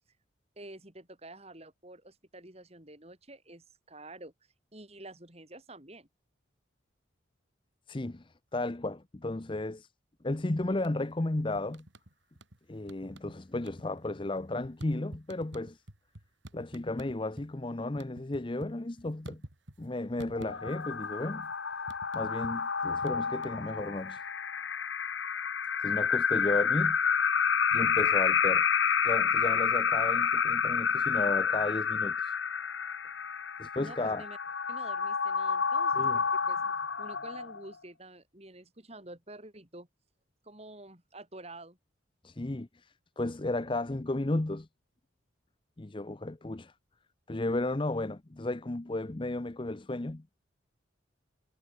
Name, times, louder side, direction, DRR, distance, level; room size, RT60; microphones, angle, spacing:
voice 1, 0.6-4.3 4.7-6.1 33.8-34.4 34.7-36.6 37.0-39.9 40.4-41.8, right 2 dB, 30° right, 4.3 m, -49 dB
voice 2, 7.9-8.2 8.5-9.9 10.2-11.9 12.7-15.8 16.5-19.4 19.8-21.5 22.1-24.2 25.8-27.0 27.7-28.7 29.0-32.3 33.6-34.2 35.9-36.2 42.2-42.7 43.2-44.7 45.8-46.7 47.3-50.2, left 2 dB, 25° left, 0.6 m, -33 dB
sound 1, 10.7-11.2 11.5-12.6 12.9-13.4 13.6-17.5 17.8-19.9 20.2-21.1 21.3-24.2, right 1 dB, 70° right, 3.8 m, -49 dB
sound 2, 20.4-37.7, left 6 dB, 65° left, 1.1 m, -29 dB
head